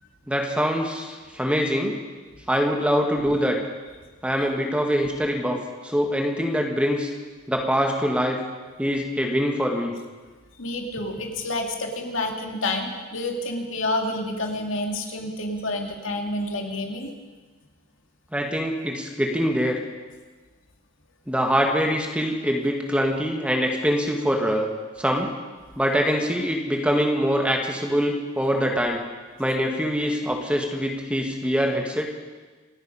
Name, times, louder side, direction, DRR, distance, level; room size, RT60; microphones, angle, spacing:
voice 1, 0.3-2.0 2.5-3.6 4.2-7.1 7.5-8.4 8.8-9.9 18.3-19.8 21.3-24.7 25.0-25.3 25.8-29.0 29.4-32.1, equal, 5° right, 2 dB, 1.5 m, -24 dB
voice 2, 10.6-17.1, left 2 dB, 75° left, 3 dB, 2.1 m, -29 dB
27.0 x 9.5 x 5.5 m, 1.3 s
head